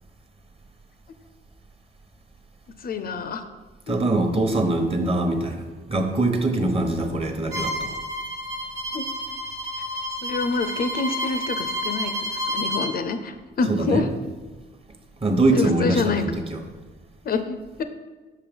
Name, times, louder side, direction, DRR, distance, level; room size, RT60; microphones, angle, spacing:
voice 1, 2.8-3.4 3.9-4.0 8.9-9.1 10.2-14.1 15.5-16.2 17.2-17.8, left 4 dB, 50° left, 9 dB, 0.5 m, -27 dB
voice 2, 3.9-5.6 5.9-8.0 13.7-14.0 15.2-16.6, right 2 dB, 30° right, 4 dB, 1.0 m, -23 dB
Bowed string instrument, 7.5-12.9, equal, 80° right, 1.2 m, -30 dB
5.7 x 4.7 x 5.3 m, 1.3 s
cardioid pair, 90°, 20 cm